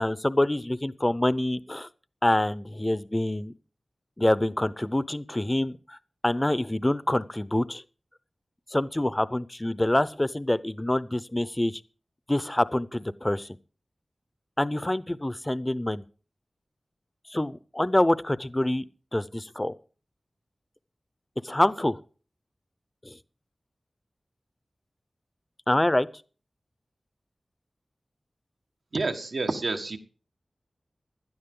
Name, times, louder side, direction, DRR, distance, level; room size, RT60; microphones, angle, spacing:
voice 1, 0.0-1.9 2.2-3.5 4.2-6.0 6.2-7.8 8.7-11.8 12.3-13.5 14.6-16.0 17.3-18.8 19.1-19.7 21.4-22.0 23.0-23.1 25.7-26.1, left 1 dB, 20° left, 0.6 m, -26 dB
voice 2, 28.9-30.0, right 3 dB, 85° right, 1.5 m, -28 dB
16.5 x 12.0 x 3.8 m
wide cardioid pair, 85°, 0 cm